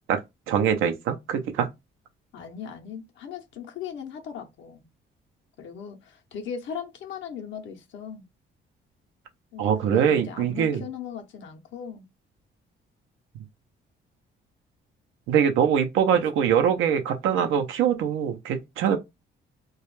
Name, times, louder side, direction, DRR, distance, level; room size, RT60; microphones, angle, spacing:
voice 1, 0.5-1.7 9.6-10.8 15.3-19.0, right 8 dB, 90° right, 0.5 m, -23 dB
voice 2, 2.3-4.8 5.6-8.3 9.5-12.1 16.1-16.3 16.7-17.0, left 7 dB, 75° left, 0.6 m, -38 dB
2.3 x 2.1 x 3.0 m
cardioid pair, 90°, 20 cm